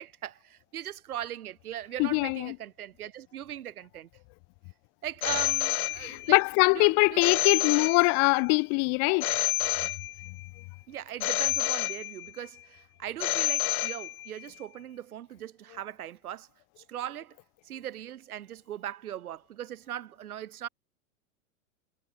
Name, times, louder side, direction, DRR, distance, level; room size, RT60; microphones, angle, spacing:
voice 1, 0.0-4.1 5.0-6.4 6.7-7.6 10.9-16.5 16.8-17.4 17.6-20.7, right 11 dB, 85° right, 1.8 m, -39 dB
voice 2, 2.0-2.5 6.0-9.3, left 40 dB or more, 40° left, 0.6 m, -23 dB
Telephone, 5.2-6.5 7.2-8.5 9.2-10.5 11.2-12.5 13.2-14.5, left 15 dB, 70° left, 1.3 m, -29 dB
hypercardioid pair, 120°, 43 cm